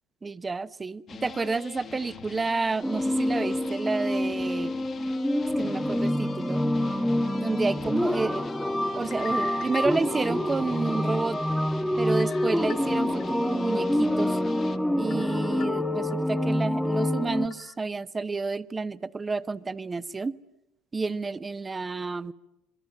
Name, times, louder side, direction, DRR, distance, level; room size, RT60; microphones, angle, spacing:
voice 1, 0.2-4.7 5.6-6.6 7.4-8.4 9.0-11.4 12.0-14.4 15.0-20.4 20.9-22.3, right 4 dB, 20° right, 15 dB, 0.9 m, -30 dB
sound 1, 1.1-14.8, left 6 dB, 40° left, 1.6 m, -44 dB
sound 2, 2.8-17.5, left 1 dB, 5° left, 1.5 m, -27 dB
sound 3, 9.0-10.8 11.3-11.4 12.2-13.2 13.7-13.8 15.1-16.2 16.6-16.7 17.5-17.8, left 11 dB, 60° left, 2.0 m, -45 dB
27.0 x 22.5 x 9.2 m, 0.86 s
supercardioid pair, 85°, 0 cm